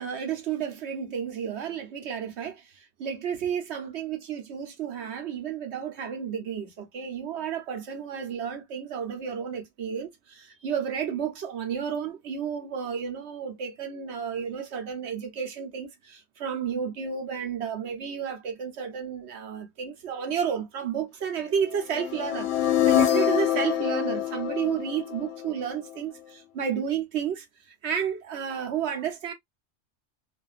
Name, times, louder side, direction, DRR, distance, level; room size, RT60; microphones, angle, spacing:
voice 1, 0.0-29.3, right 7 dB, 65° right, 0.9 m, -32 dB
sound 1, 21.9-25.9, left 11 dB, 70° left, 0.8 m, -25 dB
2.4 x 2.4 x 2.3 m
omnidirectional pair, 1.3 m